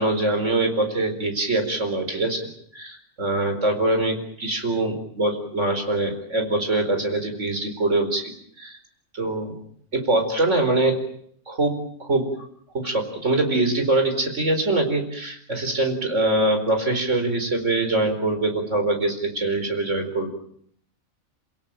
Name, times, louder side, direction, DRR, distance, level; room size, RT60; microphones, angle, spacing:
voice 1, 0.0-2.5 2.7-8.3 8.6-8.8 9.1-9.5 9.9-11.0 11.5-12.5 12.7-20.3, right 2 dB, 60° right, 6 dB, 4.9 m, -23 dB
28.5 x 17.0 x 9.1 m, 0.67 s
omnidirectional pair, 1.4 m